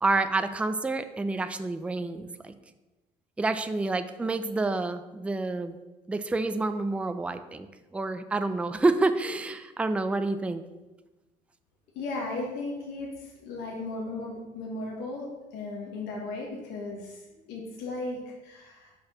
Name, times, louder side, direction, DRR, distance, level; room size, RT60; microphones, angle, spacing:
voice 1, 0.0-2.5 3.4-5.8 6.1-7.7 7.9-10.6, right 3 dB, 5° right, 10 dB, 0.3 m, -28 dB
voice 2, 11.9-18.9, left 2 dB, 85° left, -2 dB, 1.2 m, -36 dB
5.2 x 4.2 x 5.5 m, 1.1 s
cardioid pair, 110°, 17 cm